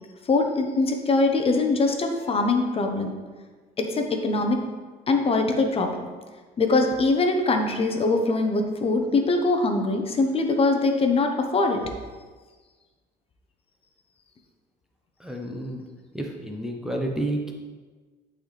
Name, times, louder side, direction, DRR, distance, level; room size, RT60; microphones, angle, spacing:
voice 1, 0.2-3.2 3.8-4.6 5.1-6.1 6.6-11.8, left 3 dB, 35° left, 4 dB, 0.9 m, -23 dB
voice 2, 15.2-15.8 16.1-17.5, right 1 dB, 5° right, 0 dB, 0.7 m, -30 dB
11.0 x 4.1 x 3.3 m, 1.4 s
cardioid pair, 110°, 17 cm